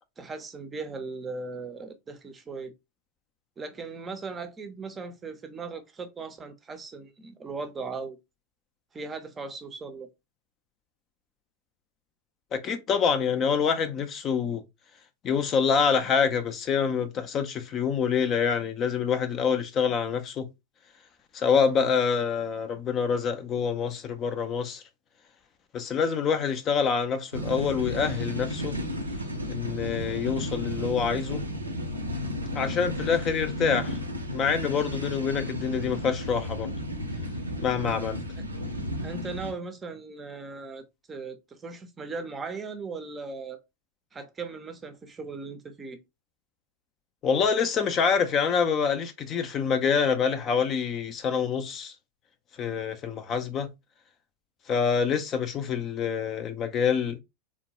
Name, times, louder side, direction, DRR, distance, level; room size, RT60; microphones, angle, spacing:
voice 1, 0.2-2.7 3.6-8.2 8.9-10.1 38.4-38.5 39.0-43.6 44.1-46.0, right 4 dB, 20° right, 0.6 m, -38 dB
voice 2, 12.5-14.6 15.2-20.5 21.3-24.8 25.7-28.8 29.5-31.4 32.5-34.0 34.3-36.7 37.6-38.2 47.2-51.9 52.6-53.7 54.7-57.2, left 6 dB, 30° left, 0.4 m, -26 dB
sound 1, 27.3-39.5, equal, 85° right, 0.6 m, -33 dB
3.6 x 2.1 x 2.9 m
figure-of-eight pair, 90°, 0 cm